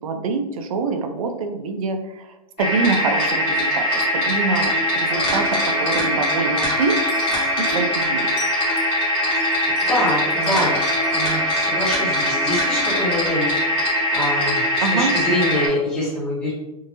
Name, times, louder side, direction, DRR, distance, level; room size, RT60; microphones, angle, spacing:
voice 1, 0.0-2.3 2.6-7.0 7.6-8.3 14.8-15.1, right 4 dB, 65° right, 6 dB, 0.5 m, -25 dB
sound 1, 2.6-15.7, equal, 30° left, 1.3 m, -21 dB
sound 2, 7.1-7.7 8.3-9.0 9.4-11.1 11.5-12.2 12.7-12.9, left 3 dB, 45° left, 1.1 m, -40 dB
voice 2, 9.6-10.8 11.1-13.5 14.1-16.5, left 1 dB, 5° left, -10 dB, 1.5 m, -25 dB
3.9 x 2.7 x 2.6 m, 1.0 s
hypercardioid pair, 150°, 19 cm